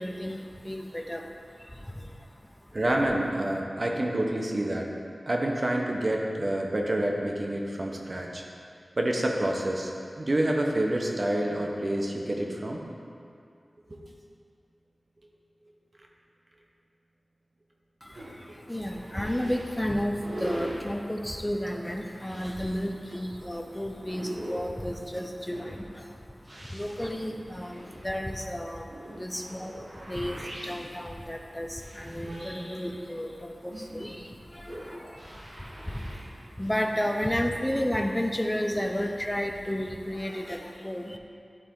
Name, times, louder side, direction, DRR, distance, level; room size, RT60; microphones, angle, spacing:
voice 1, 0.0-2.3 2.7-2.8 18.0-26.2 26.7-41.2, equal, 15° left, 3 dB, 0.7 m, -33 dB
voice 2, 2.7-4.9 5.3-8.4 9.0-9.9 10.2-12.8, right 1 dB, 45° right, 0 dB, 1.0 m, -28 dB
sound 1, 18.1-37.1, right 1 dB, 80° right, 1.4 m, -43 dB
11.5 x 4.1 x 3.8 m, 2.4 s
wide cardioid pair, 55°, 0 cm